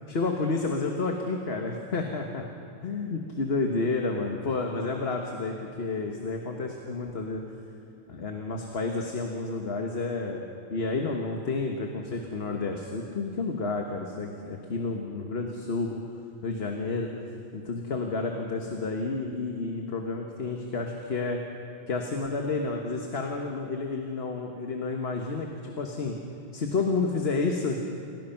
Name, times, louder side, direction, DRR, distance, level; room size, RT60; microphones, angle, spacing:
voice 1, 0.1-2.4 2.8-7.4 8.1-10.4 10.7-16.0 16.4-17.1 17.5-21.4 21.9-26.2 26.5-27.8, left 3 dB, 80° left, 2 dB, 1.6 m, -30 dB
27.5 x 17.0 x 5.8 m, 2.7 s
omnidirectional pair, 1.0 m